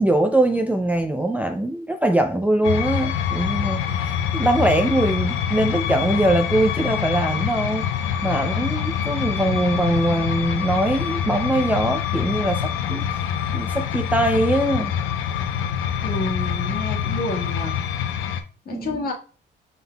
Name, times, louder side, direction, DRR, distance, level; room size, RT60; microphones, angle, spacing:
voice 1, 0.0-7.9 8.2-14.9 18.7-19.1, right 1 dB, 5° right, 0.4 m, -22 dB
sound 1, 2.6-18.4, left 8 dB, 85° left, 0.5 m, -25 dB
voice 2, 16.0-17.8 18.6-19.1, left 2 dB, 50° left, 1.4 m, -29 dB
5.1 x 3.9 x 2.2 m
cardioid pair, 90°, 20 cm